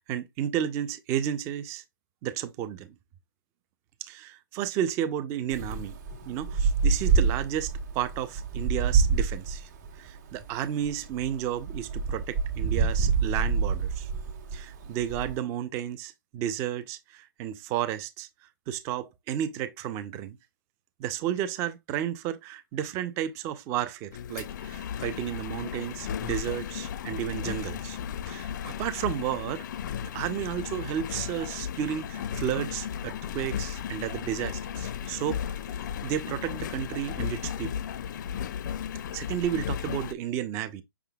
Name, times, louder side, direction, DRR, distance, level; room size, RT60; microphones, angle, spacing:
voice 1, 0.0-1.8 2.2-2.9 4.0-5.9 6.3-9.7 10.0-14.1 14.5-18.3 18.7-20.4 21.0-28.0 28.3-29.6 30.0-35.4 36.0-37.7 39.1-40.8, right 10 dB, 25° right, 0.5 m, -32 dB
Wind, 5.5-15.4, right 5 dB, 50° right, 1.4 m, -27 dB
Engine, 24.1-40.1, left 9 dB, 55° left, 0.4 m, -35 dB
5.6 x 3.6 x 2.3 m
hypercardioid pair, 145°, 12 cm